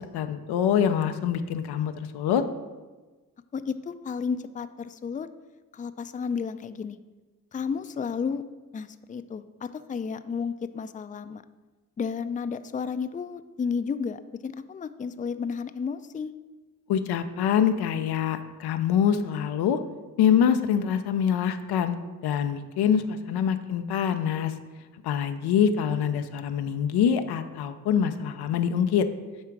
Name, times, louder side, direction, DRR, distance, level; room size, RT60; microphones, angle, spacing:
voice 1, 0.1-2.4 16.9-19.8 20.2-24.5 25.0-29.1, left 8 dB, 85° left, 9 dB, 0.5 m, -25 dB
voice 2, 3.5-5.3 5.7-7.0 7.5-8.4 8.7-11.4 12.0-16.3, left 6 dB, 20° left, 11 dB, 0.4 m, -32 dB
9.4 x 3.7 x 4.6 m, 1.3 s
supercardioid pair, 45°, 38 cm